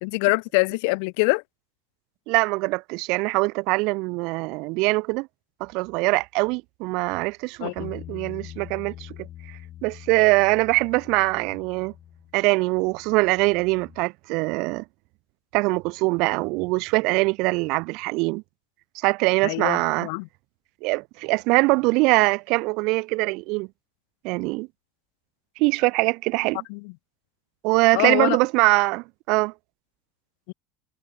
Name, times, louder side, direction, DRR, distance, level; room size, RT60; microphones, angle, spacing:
voice 1, 0.0-1.4 7.6-7.9 19.4-20.3 26.7-26.9 27.9-28.4 30.5-30.6, left 34 dB, 65° left, 0.6 m, -24 dB
voice 2, 2.3-5.3 5.6-9.1 9.5-11.9 12.3-14.8 15.5-18.4 18.9-20.1 20.8-23.7 24.2-24.7 25.6-26.6 27.6-29.5, right 26 dB, 50° right, 0.7 m, -23 dB
Bass guitar, 7.8-14.0, left 12 dB, 30° left, 2.4 m, -44 dB
cardioid pair, 175°, 0 cm